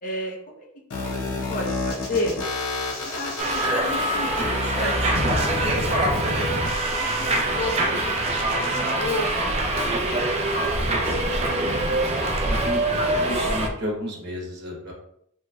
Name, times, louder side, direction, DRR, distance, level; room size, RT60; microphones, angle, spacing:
voice 1, 0.0-0.7 0.9-1.0 1.3-2.4 3.0-6.0 6.3-6.5 7.0-11.1, left 1 dB, 40° left, -1 dB, 0.7 m, -33 dB
sound 1, 0.9-8.9, left 2 dB, 90° left, 0.7 m, -30 dB
Subway metro underground, 3.4-13.7, right 1 dB, 30° right, 0.4 m, -24 dB
voice 2, 12.5-12.8 13.0-14.9, equal, 55° right, -2 dB, 1.1 m, -32 dB
3.1 x 3.0 x 2.3 m, 0.69 s
head